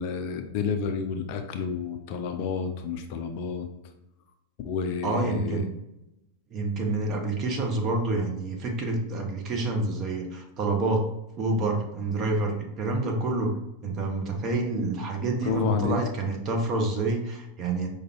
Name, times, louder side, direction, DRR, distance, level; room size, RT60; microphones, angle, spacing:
voice 1, 0.0-3.7 4.6-5.6 15.4-16.0, left 6 dB, 45° left, 6 dB, 0.4 m, -30 dB
voice 2, 5.0-5.7 6.5-11.1 11.4-13.5 13.8-17.9, right 2 dB, 35° right, 1 dB, 0.8 m, -28 dB
4.9 x 2.3 x 2.9 m, 0.90 s
figure-of-eight pair, 90°, 0 cm